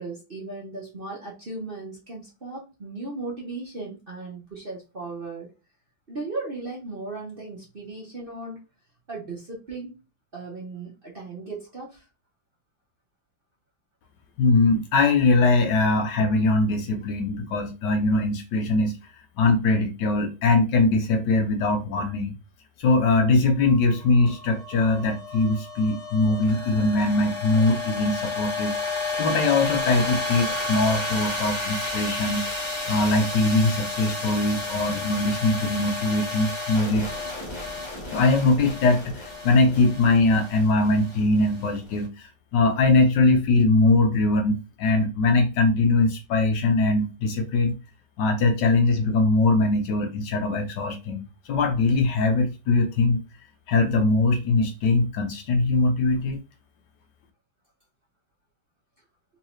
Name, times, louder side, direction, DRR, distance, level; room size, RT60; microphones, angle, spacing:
voice 1, 0.0-5.5 6.1-8.6 9.1-10.0 10.3-12.0, right 3 dB, 40° right, 0.9 m, -36 dB
voice 2, 14.4-18.9 19.4-22.4 22.8-28.8 29.2-32.5 32.9-37.1 38.1-47.8 48.2-53.2 53.7-56.4, left 2 dB, 70° left, 1.2 m, -21 dB
sound 1, 23.6-42.0, left 3 dB, 30° left, 0.5 m, -32 dB
3.6 x 3.1 x 3.0 m
omnidirectional pair, 2.2 m